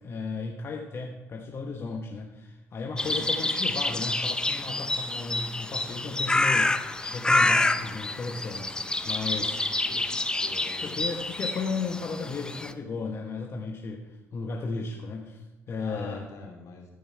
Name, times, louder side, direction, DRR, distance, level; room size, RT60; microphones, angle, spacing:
voice 1, 0.0-9.6 10.8-16.3, left 4 dB, 50° left, 2 dB, 1.1 m, -35 dB
voice 2, 2.9-3.3 9.2-10.1 10.4-11.0 15.8-16.9, left 4 dB, 70° left, 0 dB, 2.9 m, -45 dB
sound 1, 3.0-12.7, left 2 dB, 15° left, 0.7 m, -28 dB
13.5 x 5.4 x 5.6 m, 1.1 s
cardioid pair, 80°, 6 cm